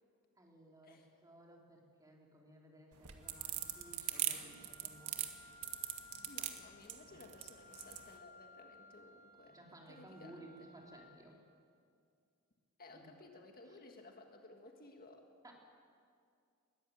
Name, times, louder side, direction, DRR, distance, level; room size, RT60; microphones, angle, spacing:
voice 1, 0.4-5.3 6.9-7.1 9.5-11.4 12.9-13.1 13.6-13.8 15.4-15.5, right 1 dB, 15° right, 0 dB, 3.1 m, -58 dB
sound 1, 2.9-8.1, right 12 dB, 80° right, 1.6 m, -40 dB
Wind instrument woodwind instrument, 3.2-11.0, left 3 dB, 65° right, 7.6 m, -60 dB
voice 2, 6.3-9.6 9.9-10.3 12.8-15.3, left 2 dB, 45° left, 3 dB, 1.7 m, -57 dB
21.0 x 14.0 x 9.2 m, 2.3 s
head